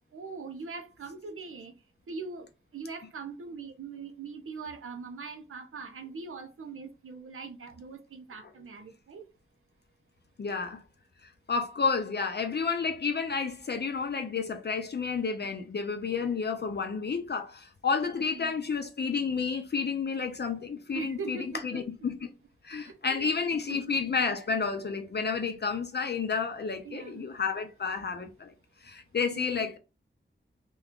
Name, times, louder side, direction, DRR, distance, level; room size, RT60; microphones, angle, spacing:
voice 1, 0.1-1.7 2.1-2.5 2.7-9.3 18.2-18.6 20.9-21.8 22.8-23.3 23.7-24.0 26.8-27.3 29.3-29.7, right 4 dB, 85° right, 0.6 m, -41 dB
voice 2, 10.4-10.8 11.2-22.3 22.6-28.5 28.8-29.8, left 5 dB, 55° left, 0.5 m, -31 dB
2.9 x 2.3 x 3.6 m
wide cardioid pair, 85°, 21 cm